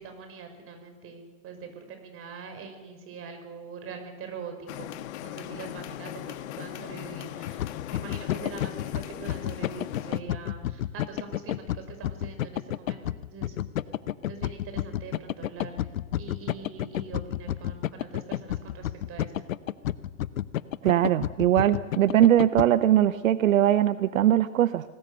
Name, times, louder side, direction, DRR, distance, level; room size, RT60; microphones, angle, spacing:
voice 1, 0.0-13.6 14.3-15.9 16.2-19.3, right 5 dB, 35° right, 6 dB, 5.6 m, -43 dB
sound 1, 4.7-10.2, left 12 dB, 55° left, 1.5 m, -39 dB
sound 2, 7.5-22.7, left 12 dB, 75° left, 0.9 m, -30 dB
voice 2, 20.8-24.8, right 11 dB, 75° right, 14 dB, 0.9 m, -21 dB
25.5 x 18.5 x 6.7 m, 1.4 s
hypercardioid pair, 110°, 40 cm